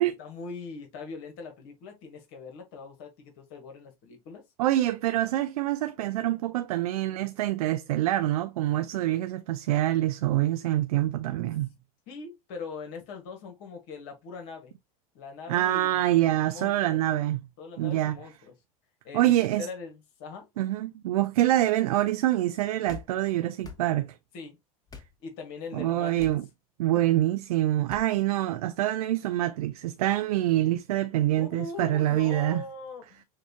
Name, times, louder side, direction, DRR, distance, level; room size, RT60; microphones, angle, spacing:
voice 1, 0.2-4.4 12.1-14.7 15.1-17.0 17.6-18.5 19.0-20.5 24.3-24.6 25.2-26.3 26.9-27.0 31.4-33.2, left 4 dB, 60° left, 1.4 m, -41 dB
voice 2, 4.6-11.7 15.5-17.4 17.8-18.2 19.1-19.7 20.6-24.1 25.7-26.4 26.8-32.6, right 14 dB, 85° right, 0.4 m, -25 dB
sound 1, 22.9-23.1 23.6-23.8 24.9-25.1 26.2-26.4 27.9-28.1, left 5 dB, 20° left, 1.1 m, -43 dB
6.5 x 2.3 x 2.8 m
hypercardioid pair, 105°, 19 cm